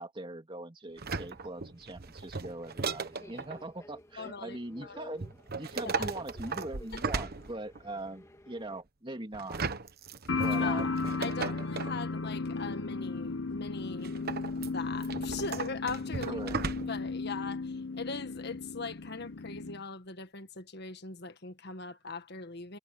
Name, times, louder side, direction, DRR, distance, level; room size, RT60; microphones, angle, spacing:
voice 1, 0.0-5.3 5.6-9.6 10.4-11.0 11.4-11.5 16.3-16.6, right 2 dB, 25° right, 2.6 m, -41 dB
Subway metro underground, 0.9-8.8, left 1 dB, 15° left, 1.7 m, -54 dB
sound 1, 1.0-3.6 5.2-8.0 9.3-12.0 14.0-17.1 17.5-17.6, right 4 dB, 55° right, 1.2 m, -37 dB
voice 2, 4.2-5.1 5.8-6.1 6.9-7.0 10.5-14.2 14.6-16.4 16.7-22.8, left 4 dB, 60° left, 1.6 m, -40 dB
sound 2, 10.3-19.8, left 3 dB, 90° left, 0.8 m, -35 dB
head